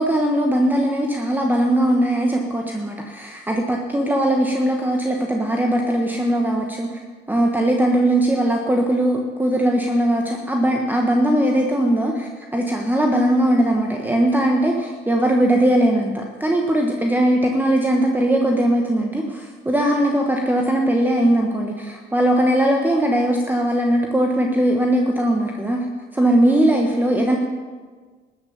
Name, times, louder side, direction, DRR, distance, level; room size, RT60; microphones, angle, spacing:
voice 1, 0.0-7.0 7.3-25.8 26.1-27.4, right 1 dB, 10° right, 1 dB, 1.4 m, -19 dB
13.5 x 8.7 x 7.2 m, 1.5 s
cardioid pair, 90°, 20 cm